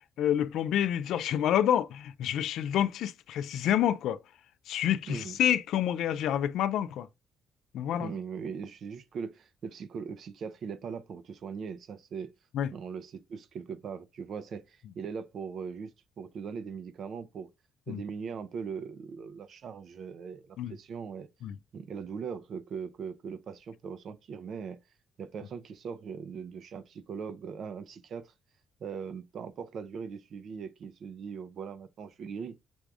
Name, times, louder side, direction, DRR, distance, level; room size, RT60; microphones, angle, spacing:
voice 1, 0.2-4.2 4.7-7.1 7.7-8.1 12.5-12.7 17.9-18.0 20.6-20.7 21.4-21.6, left 10 dB, 80° left, 0.3 m, -28 dB
voice 2, 5.1-5.4 8.0-12.3 12.7-17.5 17.9-21.3 21.7-24.8 25.2-28.3 28.8-32.6, right 6 dB, 65° right, 0.5 m, -40 dB
6.1 x 3.4 x 2.4 m
cardioid pair, 90°, 0 cm